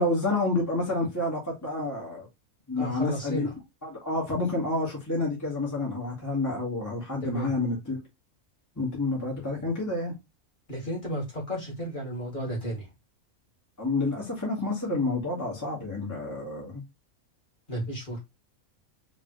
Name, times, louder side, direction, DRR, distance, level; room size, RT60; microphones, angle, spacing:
voice 1, 0.0-2.3 2.7-3.5 3.8-8.0 8.7-10.1 13.8-16.8, left 2 dB, 10° left, 1.5 m, -29 dB
voice 2, 2.8-3.5 7.2-7.5 9.5-9.6 10.7-12.9 17.7-18.2, equal, 35° left, 2.5 m, -33 dB
4.4 x 3.3 x 3.1 m
omnidirectional pair, 1.5 m